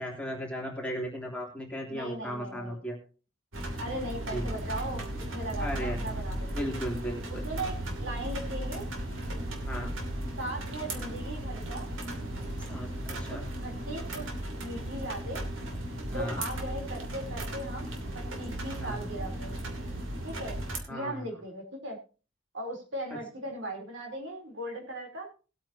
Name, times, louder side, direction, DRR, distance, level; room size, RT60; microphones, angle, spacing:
voice 1, 0.0-3.0 4.3-4.5 5.6-6.1 6.5-7.4 9.7-9.9 12.7-13.4 16.1-16.4 18.8-19.0 20.9-21.2, equal, 5° left, -1 dB, 3.2 m, -36 dB
voice 2, 1.9-2.8 3.8-5.0 5.3-6.6 7.3-8.9 10.4-11.9 13.3-14.2 14.6-15.5 16.1-19.5 20.2-20.6 20.9-22.0 22.5-25.3, right 1 dB, 65° right, 2 dB, 3.7 m, -38 dB
sound 1, 3.5-20.8, right 1 dB, 85° right, 2.8 m, -36 dB
sound 2, 7.5-10.3, right 3 dB, 45° right, 0.8 m, -47 dB
20.0 x 8.8 x 2.9 m, 0.35 s
head